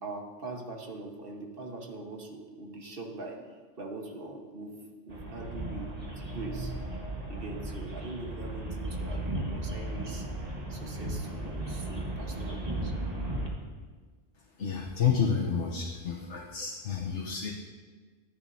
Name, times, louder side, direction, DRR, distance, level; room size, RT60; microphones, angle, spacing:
voice 1, 0.0-3.4 3.8-6.7 7.3-10.3 10.7-12.9, right 2 dB, 55° right, 1 dB, 1.5 m, -42 dB
sound 1, 5.1-13.5, right 1 dB, 35° right, 1.5 m, -35 dB
voice 2, 14.6-17.5, left 7 dB, 90° left, -1 dB, 1.3 m, -30 dB
13.5 x 10.5 x 2.7 m, 1.5 s
omnidirectional pair, 1.2 m